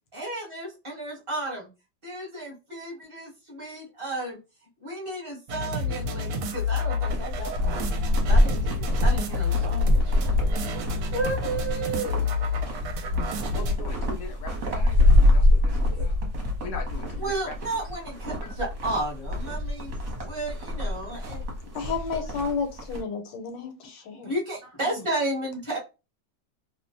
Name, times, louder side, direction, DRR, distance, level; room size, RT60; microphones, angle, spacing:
voice 1, 0.1-1.7 2.0-4.4 4.8-7.9 8.3-10.3 11.1-12.1 15.9-16.1 17.2-19.9 20.2-21.4 22.1-22.2 24.2-25.8, right 2 dB, 25° right, 0.7 m, -33 dB
sound 1, 5.5-13.7, left 4 dB, 75° right, 1.1 m, -29 dB
sound 2, 7.1-23.0, left 1 dB, 60° right, 1.1 m, -25 dB
voice 2, 13.5-15.0 15.3-16.2 16.6-17.8 18.4-18.5, left 4 dB, 65° left, 0.9 m, -41 dB
voice 3, 21.7-24.3 24.8-25.0, left 5 dB, 85° left, 1.3 m, -32 dB
3.0 x 2.1 x 2.5 m
omnidirectional pair, 1.9 m